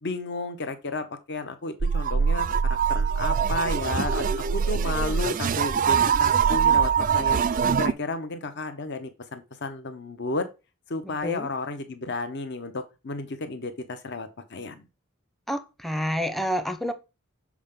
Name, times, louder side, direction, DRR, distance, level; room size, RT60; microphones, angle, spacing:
voice 1, 0.0-7.4 7.8-10.5 10.9-14.8, left 3 dB, 55° left, 9 dB, 0.9 m, -32 dB
sound 1, 1.8-7.9, right 7 dB, 40° right, 0.4 m, -23 dB
voice 2, 11.0-11.5 15.5-16.9, equal, ahead, 9 dB, 0.7 m, -29 dB
7.2 x 4.8 x 3.7 m, 0.28 s
head